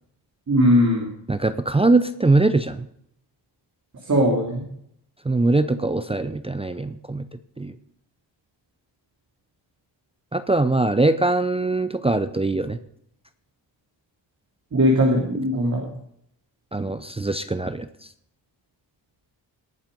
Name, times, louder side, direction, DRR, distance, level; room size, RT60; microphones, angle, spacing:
voice 1, 0.5-1.1 4.1-4.6 14.7-15.9, equal, 40° right, -1 dB, 2.8 m, -19 dB
voice 2, 1.3-2.9 5.2-7.3 7.6-7.7 10.3-12.8 16.7-17.9, right 2 dB, 15° right, 10 dB, 0.5 m, -22 dB
19.0 x 7.3 x 5.3 m, 0.72 s
cardioid pair, 110°, 44 cm